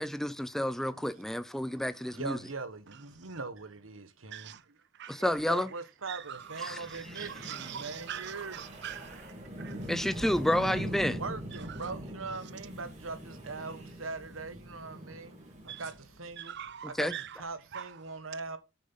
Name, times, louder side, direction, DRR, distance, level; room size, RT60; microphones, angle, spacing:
voice 1, 0.0-2.4 5.1-5.7 6.6-6.8 9.9-11.2 17.0-17.1, equal, ahead, 0.6 m, -30 dB
voice 2, 0.9-4.6 5.2-8.7 10.6-16.6 16.8-17.1 17.4-18.6, right 4 dB, 90° right, 1.4 m, -42 dB
voice 3, 4.3-4.6 4.9-5.2 6.1-9.9 11.7-11.8 15.7-15.8 16.4-17.4 17.7-18.0, right 9 dB, 60° right, 0.6 m, -43 dB
Wind, 6.4-16.7, equal, 35° right, 3.9 m, -42 dB
8.0 x 6.4 x 5.7 m
head